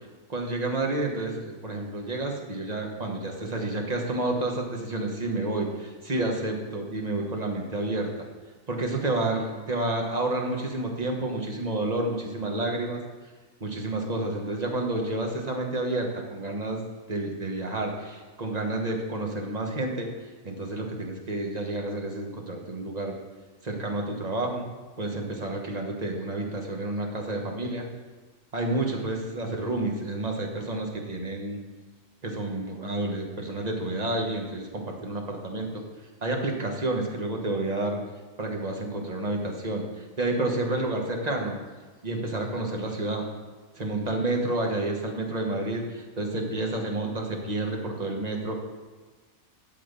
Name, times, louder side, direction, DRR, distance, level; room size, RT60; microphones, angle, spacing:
voice 1, 0.3-8.1 8.7-13.0 13.6-20.1 20.4-23.1 23.6-24.7 25.0-27.9 28.5-31.6 32.2-35.8 36.2-38.0 38.4-41.6 42.0-43.3 43.7-48.6, right 2 dB, 30° right, 1 dB, 1.3 m, -30 dB
12.0 x 4.0 x 6.7 m, 1.4 s
omnidirectional pair, 1.4 m